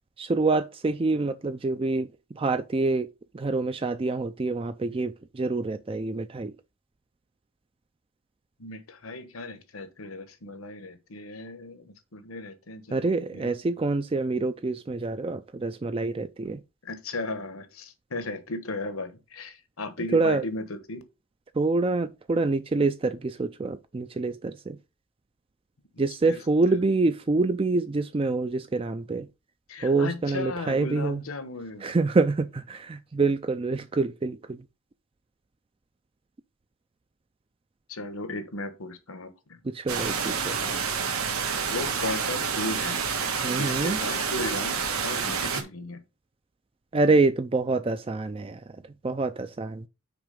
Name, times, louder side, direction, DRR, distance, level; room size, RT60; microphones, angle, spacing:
voice 1, 0.2-2.1 2.4-3.1 3.3-6.5 12.9-16.6 20.1-20.4 21.6-24.8 26.0-29.3 29.8-31.2 31.8-34.6 39.6-40.6 43.4-44.0 46.9-49.8, right 3 dB, 25° right, 0.3 m, -26 dB
voice 2, 8.6-13.6 16.8-21.0 26.2-26.4 26.7-26.8 29.7-31.9 37.9-39.6 41.6-43.0 43.5-46.0, left 2 dB, 75° left, 1.2 m, -36 dB
sound 1, 39.9-45.6, right 6 dB, 90° right, 1.5 m, -28 dB
6.0 x 4.6 x 5.2 m
head